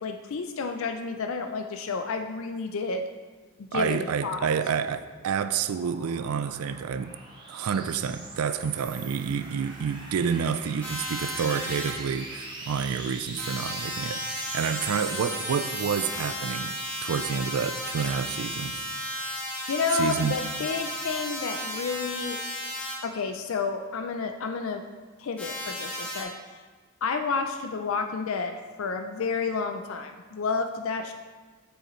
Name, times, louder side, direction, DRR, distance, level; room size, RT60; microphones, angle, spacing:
voice 1, 0.0-3.1 3.6-4.5 19.7-22.4 23.0-24.8 25.2-26.6 27.0-31.1, left 5 dB, 70° left, 6 dB, 0.4 m, -30 dB
voice 2, 3.7-7.1 7.5-18.8 19.9-20.4, right 7 dB, 85° right, 10 dB, 0.4 m, -29 dB
sound 1, 5.0-17.0, right 2 dB, 20° right, 0.9 m, -41 dB
sound 2, 10.8-11.9 13.4-22.9 25.4-26.2, left 1 dB, 5° left, 1.1 m, -34 dB
7.7 x 6.4 x 3.1 m, 1.4 s
head